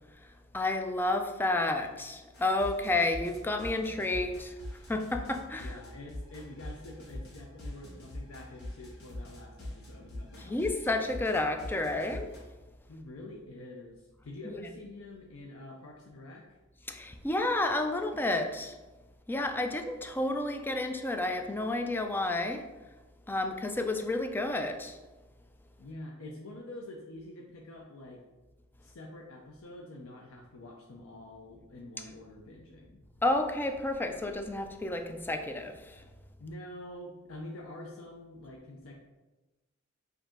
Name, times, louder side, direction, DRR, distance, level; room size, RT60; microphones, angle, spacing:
voice 1, 0.5-4.5 4.9-5.8 10.3-12.3 14.4-14.6 16.9-18.7 19.3-22.6 23.3-25.0 33.2-36.0, left 2 dB, 10° left, 5 dB, 0.3 m, -31 dB
sound 1, 2.3-12.4, left 1 dB, 55° left, 1.1 m, -42 dB
voice 2, 5.5-10.6 12.9-16.4 25.8-28.2 28.8-33.0 36.4-39.0, left 1 dB, 85° left, 0 dB, 0.5 m, -46 dB
5.0 x 2.6 x 3.7 m, 1.1 s
head